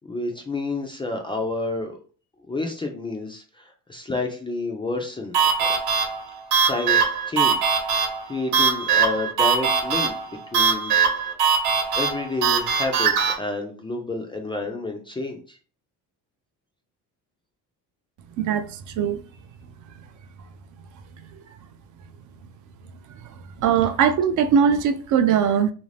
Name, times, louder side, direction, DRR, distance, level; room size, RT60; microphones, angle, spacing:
voice 1, 0.1-2.0 2.5-5.7 6.6-7.0 7.3-7.6 7.9-10.1 10.5-11.0 11.9-15.6, left 2 dB, 15° left, 0.3 m, -29 dB
sound 1, 5.3-13.3, right 6 dB, 70° right, 1.0 m, -21 dB
voice 2, 18.4-19.2 23.6-25.7, right 7 dB, 50° right, 0.5 m, -20 dB
3.1 x 2.6 x 3.2 m
cardioid pair, 135°, 39 cm